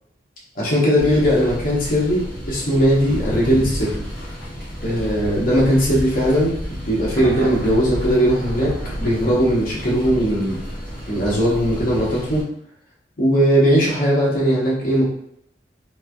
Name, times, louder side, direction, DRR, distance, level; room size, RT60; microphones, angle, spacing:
voice 1, 0.6-4.1 4.8-10.6 11.1-12.4 13.2-15.0, equal, 50° left, -5 dB, 0.8 m, -19 dB
sound 1, 1.0-12.4, equal, 10° left, 1.4 m, -31 dB
Thunder, 7.2-10.1, right 2 dB, 75° right, 0.4 m, -35 dB
3.1 x 2.4 x 2.2 m, 0.72 s
head